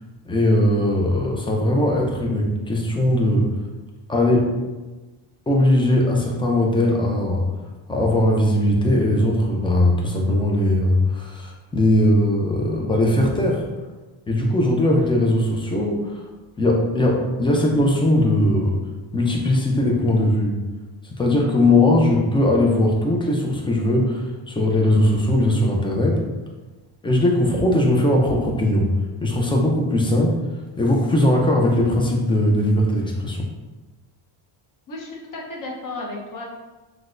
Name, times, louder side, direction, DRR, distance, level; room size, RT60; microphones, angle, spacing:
voice 1, 0.3-3.5 4.1-4.6 5.5-7.5 7.9-13.6 14.3-16.2 16.6-18.8 19.1-20.6 21.0-26.2 27.0-30.4 30.8-33.4, left 1 dB, 10° left, -1 dB, 0.4 m, -19 dB
voice 2, 34.9-36.4, left 2 dB, 40° left, -2 dB, 0.8 m, -33 dB
6.0 x 2.2 x 2.5 m, 1.2 s
cardioid pair, 140°, 48 cm